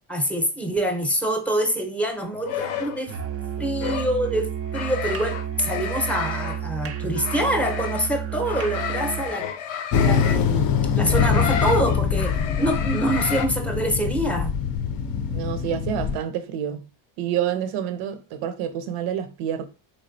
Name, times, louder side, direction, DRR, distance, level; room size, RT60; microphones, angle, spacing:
voice 1, 0.1-3.1 3.6-9.5 9.9-10.7 10.9-14.5, right 1 dB, 5° left, 0.7 m, -25 dB
sound 1, 2.4-3.0 3.8-4.1 4.7-6.6 7.1-8.1 8.4-10.4 11.0-13.5, left 8 dB, 90° left, 0.7 m, -31 dB
Musical instrument, 3.1-9.4, right 9 dB, 35° right, 0.4 m, -31 dB
sound 2, 9.9-16.2, left 6 dB, 50° left, 0.5 m, -23 dB
voice 2, 15.3-16.8 17.2-19.7, right 9 dB, 85° right, 0.7 m, -28 dB
3.6 x 3.2 x 2.6 m
cardioid pair, 100°, 48 cm